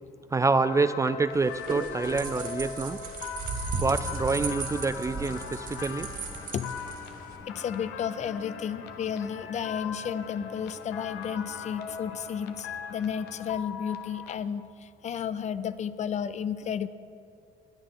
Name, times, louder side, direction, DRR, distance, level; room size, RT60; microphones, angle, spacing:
voice 1, 0.3-3.0 3.8-6.1, right 4 dB, 20° right, 13 dB, 0.3 m, -27 dB
sound 1, 0.6-14.3, left 7 dB, 85° left, 0.9 m, -40 dB
sound 2, 1.3-7.4, right 4 dB, 55° right, 2.3 m, -36 dB
sound 3, 3.8-13.5, left 2 dB, 25° left, 1.9 m, -50 dB
voice 2, 7.5-16.9, left 8 dB, 45° left, 14 dB, 0.5 m, -32 dB
20.5 x 11.0 x 3.8 m, 2.4 s
cardioid pair, 110°, 17 cm